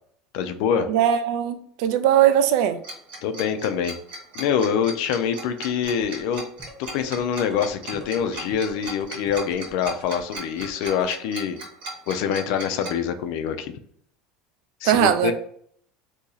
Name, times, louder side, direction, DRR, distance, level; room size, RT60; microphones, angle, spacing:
voice 1, 0.3-0.9 3.2-4.0 4.3-6.4 6.8-11.6 12.1-13.7 14.8-15.3, left 7 dB, 65° left, 0.4 m, -25 dB
voice 2, 0.9-2.8 14.8-15.3, right 10 dB, 65° right, 0.4 m, -20 dB
Tick-tock, 2.8-12.9, right 2 dB, 85° right, 1.4 m, -36 dB
sound 1, 5.8-11.0, equal, 10° right, 1.0 m, -44 dB
2.8 x 2.7 x 3.9 m
cardioid pair, 145°, 0 cm